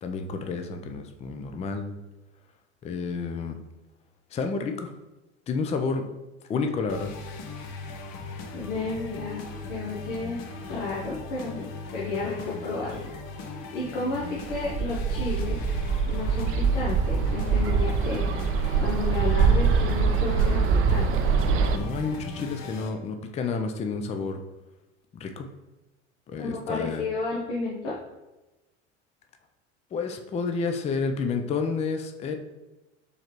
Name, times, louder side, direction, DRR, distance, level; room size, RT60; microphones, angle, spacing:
voice 1, 0.0-1.9 2.8-3.6 4.3-4.9 5.5-6.0 6.5-7.1 21.7-24.4 25.1-25.5 26.3-27.0 29.9-32.3, left 4 dB, 20° left, 6 dB, 0.4 m, -30 dB
sound 1, 6.9-22.9, left 3 dB, 50° left, 0.8 m, -39 dB
voice 2, 8.5-10.4 10.7-13.1 13.5-15.6 16.1-18.3 18.8-21.3 26.4-27.9, left 3 dB, 75° left, -6 dB, 1.0 m, -32 dB
Bird, 14.5-21.8, right 5 dB, 40° right, 0.4 m, -24 dB
4.6 x 3.3 x 3.0 m, 1.0 s
hypercardioid pair, 75°, 36 cm